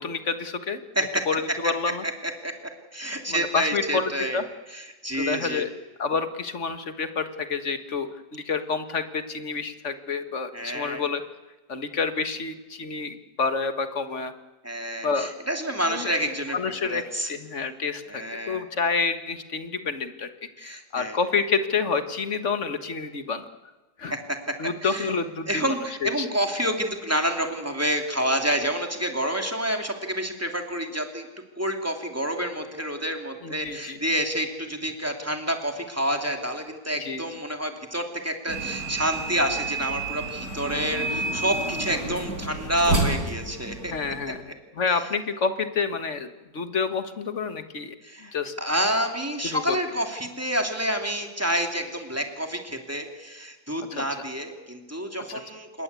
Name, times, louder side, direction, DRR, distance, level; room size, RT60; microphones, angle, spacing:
voice 1, 0.0-0.8 1.3-2.0 3.3-4.4 5.1-5.7 6.0-11.2 11.7-14.3 15.0-15.3 15.9-16.1 16.5-17.0 17.3-20.3 20.6-23.5 24.0-24.2 24.6-25.7 26.0-26.3 33.4-34.0 37.0-37.2 43.9-48.0 48.2-48.5 49.4-49.8 53.9-54.0 55.3-55.4, left 5 dB, 45° left, 9 dB, 1.8 m, -28 dB
voice 2, 2.9-4.4 4.7-5.7 10.5-11.0 14.6-16.6 16.8-17.3 18.1-18.6 20.6-21.2 24.1-24.4 24.8-25.1 25.5-31.3 31.6-43.9 48.0-55.8, equal, 10° right, 3 dB, 2.9 m, -28 dB
sound 1, 38.5-44.3, right 2 dB, 65° right, 4.9 m, -30 dB
27.5 x 21.0 x 8.4 m, 1.2 s
omnidirectional pair, 1.8 m